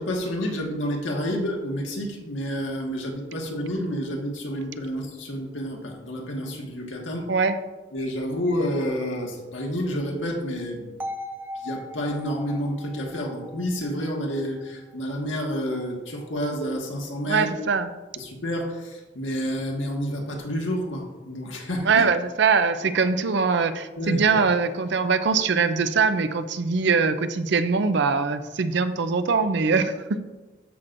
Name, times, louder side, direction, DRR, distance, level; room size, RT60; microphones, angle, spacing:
voice 1, 0.0-7.3 7.9-10.9 11.5-17.5 18.2-22.1 24.0-24.2, equal, 80° left, 0 dB, 1.6 m, -29 dB
sound 1, 11.0-15.0, left 1 dB, 10° right, 0.5 m, -39 dB
voice 2, 17.3-17.9 21.9-30.2, right 5 dB, 60° right, 11 dB, 0.5 m, -22 dB
13.5 x 6.0 x 2.6 m, 1.2 s
head